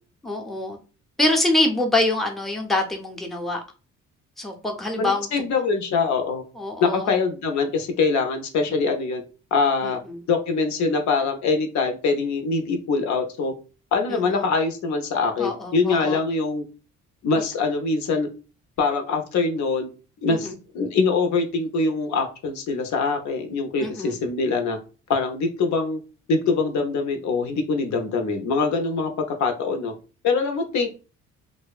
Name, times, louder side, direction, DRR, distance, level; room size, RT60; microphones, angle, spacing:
voice 1, 0.2-0.8 1.2-3.6 4.4-5.3 6.6-7.1 9.8-10.2 14.1-14.5 15.4-16.2 20.3-20.5 23.8-24.2, left 2 dB, ahead, 1 dB, 0.5 m, -25 dB
voice 2, 5.0-6.4 6.8-9.2 9.5-10.0 10.3-13.5 13.9-16.6 17.2-18.3 18.8-19.9 20.2-24.8 25.1-26.0 26.3-29.1 29.4-29.9 30.2-30.9, left 4 dB, 70° left, 4 dB, 0.6 m, -23 dB
2.7 x 2.1 x 2.3 m, 0.34 s
cardioid pair, 90°, 30 cm